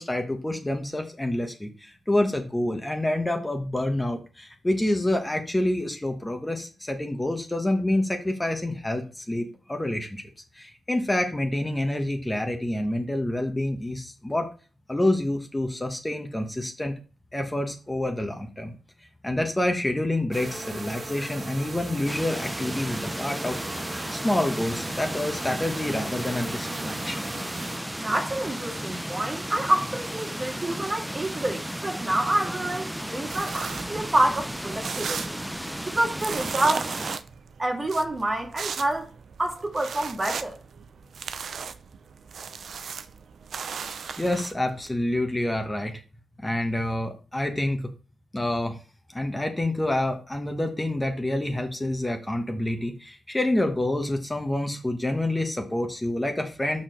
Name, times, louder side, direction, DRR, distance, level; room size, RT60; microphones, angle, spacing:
voice 1, 0.0-10.2 10.5-14.5 14.9-16.9 17.3-18.7 19.2-23.6 24.1-27.3 44.2-46.0 46.4-47.9 48.3-48.8 49.1-56.8, left 1 dB, 15° left, 1.3 m, -27 dB
sound 1, 20.3-27.8, right 2 dB, 50° right, 1.7 m, -38 dB
sound 2, 22.1-37.2, equal, 5° right, 0.5 m, -34 dB
voice 2, 28.0-35.3 35.9-36.9 37.6-39.1 39.4-40.6, right 1 dB, 30° right, 1.9 m, -27 dB
sound 3, 33.3-44.9, right 6 dB, 75° right, 0.5 m, -37 dB
5.8 x 4.6 x 5.2 m
cardioid pair, 55°, 0 cm